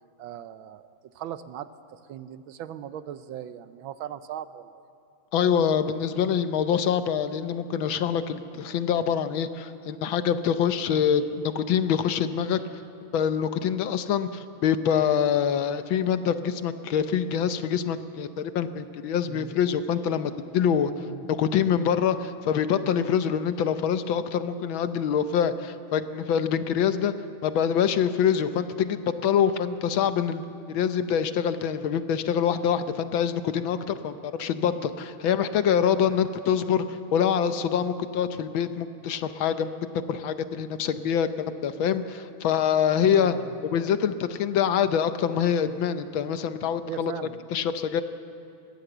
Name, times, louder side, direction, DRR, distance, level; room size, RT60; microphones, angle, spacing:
voice 1, 0.2-4.7 10.9-11.1 19.3-19.5 21.1-21.3 43.1-43.6 46.9-47.4, right 10 dB, 75° right, 13 dB, 1.3 m, -39 dB
voice 2, 5.3-11.3 11.5-12.6 13.1-27.1 27.4-30.4 30.7-39.7 40.1-41.3 41.6-43.3 43.6-47.1 47.5-48.0, left 8 dB, 70° left, 11 dB, 1.5 m, -25 dB
21.5 x 16.0 x 7.9 m, 2.7 s
omnidirectional pair, 2.4 m